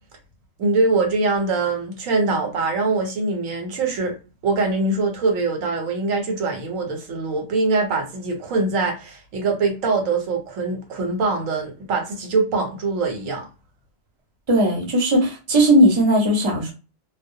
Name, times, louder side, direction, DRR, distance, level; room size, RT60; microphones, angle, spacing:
voice 1, 0.6-4.2 4.4-13.5, right 3 dB, 75° right, 1.1 m, -23 dB
voice 2, 14.5-16.7, equal, 25° right, 0.7 m, -17 dB
2.3 x 2.1 x 2.6 m
omnidirectional pair, 1.4 m